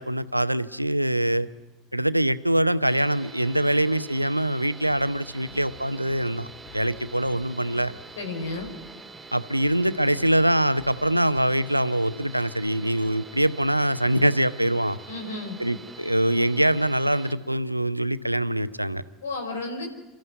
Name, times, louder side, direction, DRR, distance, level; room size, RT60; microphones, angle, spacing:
voice 1, 0.0-1.5 1.9-6.5 6.7-7.9 9.3-15.0 15.6-19.0, right 1 dB, 90° right, 14 dB, 0.7 m, -23 dB
sound 1, 2.9-17.3, right 4 dB, 5° right, 4.4 m, -45 dB
sound 2, 4.9-9.3 9.6-11.9, left 4 dB, 50° left, 3.5 m, -50 dB
voice 2, 8.2-8.7 15.1-15.6 19.2-19.9, left 2 dB, 70° left, 3 dB, 4.8 m, -32 dB
29.0 x 14.0 x 9.5 m, 1.1 s
figure-of-eight pair, 75°, 0 cm